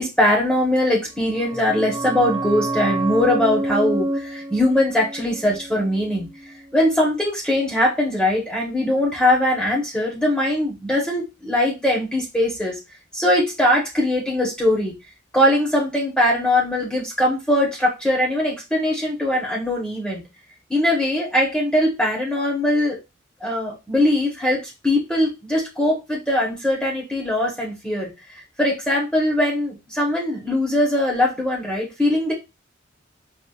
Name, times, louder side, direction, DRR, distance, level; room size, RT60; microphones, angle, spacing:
voice 1, 0.0-6.3 6.7-12.8 13.1-14.9 15.3-20.2 20.7-23.0 23.4-32.3, left 1 dB, 5° left, -3 dB, 0.9 m, -21 dB
sound 1, 1.1-6.5 6.8-6.9, right 1 dB, 20° right, 0.5 m, -28 dB
5.0 x 2.4 x 2.3 m, 0.24 s
head